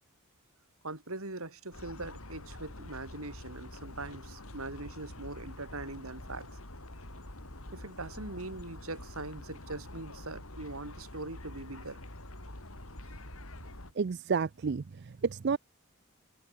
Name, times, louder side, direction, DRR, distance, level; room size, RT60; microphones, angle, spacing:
voice 1, 0.8-6.6 7.7-12.0, right 2 dB, 75° right, 3.7 m, -42 dB
sound 1, 1.7-13.9, left 1 dB, 75° left, 4.6 m, -46 dB
voice 2, 13.9-15.6, right 5 dB, 50° right, 0.4 m, -31 dB
head